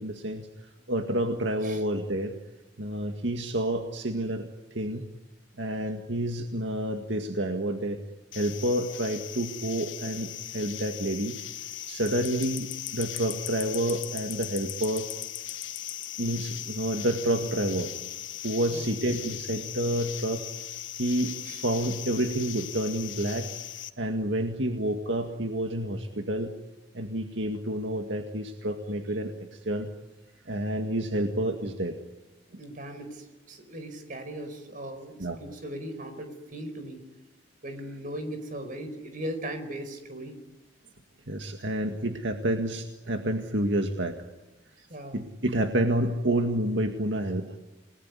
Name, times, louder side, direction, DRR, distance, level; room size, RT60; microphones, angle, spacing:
voice 1, 0.0-2.4 2.8-5.1 5.6-8.0 8.3-11.4 11.9-15.1 16.2-17.9 18.4-20.5 20.9-21.3 21.6-23.5 24.0-26.5 26.9-29.9 30.5-32.0 35.2-35.4 41.3-44.2 45.1-47.6, right 1 dB, 75° right, 4 dB, 2.0 m, -29 dB
sound 1, 8.3-23.9, left 12 dB, 85° left, 1.3 m, -38 dB
voice 2, 32.6-37.0 37.6-40.4 44.9-45.2, right 1 dB, 45° right, 8 dB, 4.8 m, -38 dB
29.0 x 20.0 x 9.8 m, 1.1 s
head